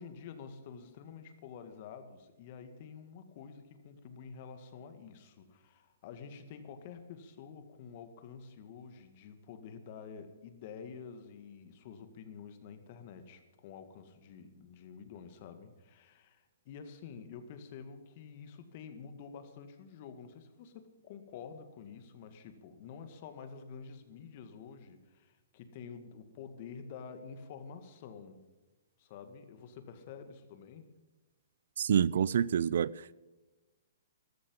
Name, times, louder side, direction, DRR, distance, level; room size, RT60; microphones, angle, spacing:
voice 1, 0.0-28.4 29.0-30.9, left 6 dB, 45° left, 2.0 m, -49 dB
voice 2, 31.8-32.9, right 8 dB, 65° right, 0.4 m, -27 dB
14.0 x 13.5 x 5.4 m
hypercardioid pair, 135°, 0 cm